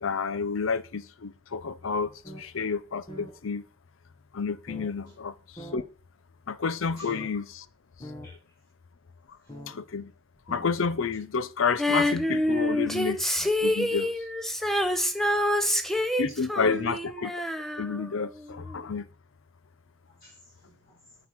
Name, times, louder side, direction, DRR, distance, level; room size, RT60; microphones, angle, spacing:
voice 1, 0.0-3.6 4.3-5.9 6.5-7.7 9.7-10.1 10.5-14.1 16.2-17.4 17.8-19.1, left 5 dB, 70° left, 0.6 m, -30 dB
sound 1, 2.2-2.4 2.8-2.9 3.1-3.3 4.7-4.9 5.6-5.8 6.5-6.6 7.1-7.3 7.7-7.8 8.0-8.3 9.5-9.8 10.4-10.8, equal, 25° left, 1.5 m, -42 dB
Female singing, 11.8-18.4 18.7-18.8, left 1 dB, ahead, 0.8 m, -27 dB
voice 2, 15.4-16.1 16.6-16.9 20.1-21.1, left 2 dB, 45° left, 3.4 m, -52 dB
9.6 x 5.8 x 4.6 m
head